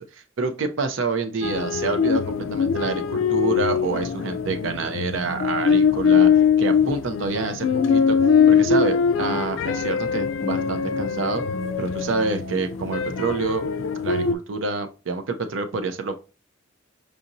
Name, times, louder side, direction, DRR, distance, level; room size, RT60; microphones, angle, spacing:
voice 1, 0.0-8.2 8.5-11.4 11.8-16.1, right 4 dB, 85° right, 8 dB, 0.5 m, -27 dB
sound 1, 1.4-14.3, left 6 dB, 80° left, 0.4 m, -22 dB
4.8 x 2.6 x 2.8 m, 0.32 s
head